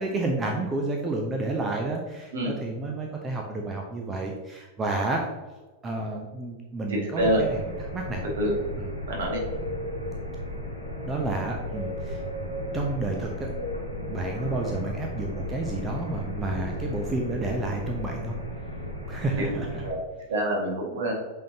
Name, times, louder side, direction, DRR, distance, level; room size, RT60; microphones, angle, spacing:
voice 1, 0.0-5.3 5.8-7.6 7.9-8.2 8.8-8.9 11.1-12.2 12.7-13.5 14.1-18.3 19.1-19.8, right 2 dB, 20° right, 1 dB, 0.7 m, -30 dB
voice 2, 6.9-7.4 8.4-8.5 9.1-9.4 19.4-19.5 19.8-20.0 20.3-21.1, right 1 dB, 60° right, -1 dB, 1.9 m, -26 dB
sound 1, 7.2-19.9, left 1 dB, 90° left, 1.3 m, -34 dB
8.5 x 3.9 x 2.8 m, 1.2 s
figure-of-eight pair, 90°, 0 cm